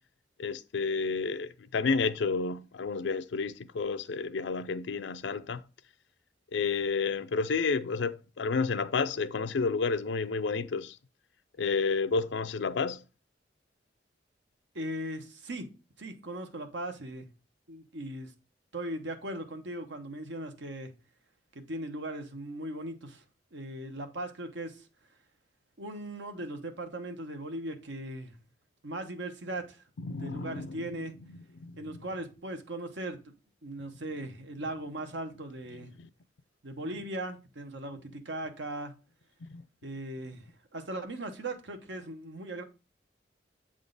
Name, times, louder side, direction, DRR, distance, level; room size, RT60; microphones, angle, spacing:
voice 1, 0.4-5.6 6.5-11.0 11.6-13.0 30.0-30.8 31.3-32.0 36.0-36.1 39.4-39.7, left 4 dB, 80° left, 0.5 m, -31 dB
voice 2, 14.7-15.7 16.0-17.3 17.7-18.3 18.7-20.9 21.7-23.2 23.5-24.9 25.8-28.3 28.8-31.1 31.8-33.3 33.6-35.9 36.6-38.9 39.8-42.6, right 1 dB, 85° right, 1.1 m, -38 dB
7.8 x 3.7 x 3.9 m
head